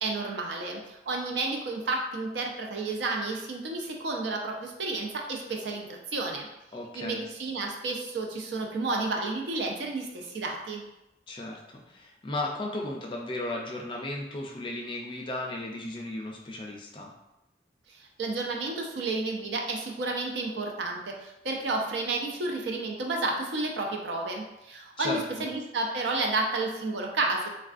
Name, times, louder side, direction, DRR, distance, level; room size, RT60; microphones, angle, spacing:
voice 1, 0.0-6.5 6.9-10.8 18.2-27.5, right 3 dB, 75° right, 1 dB, 0.5 m, -31 dB
voice 2, 6.7-7.2 11.3-17.1 25.0-25.5, left 2 dB, 30° left, 0 dB, 0.4 m, -35 dB
3.2 x 2.3 x 2.4 m, 0.91 s
head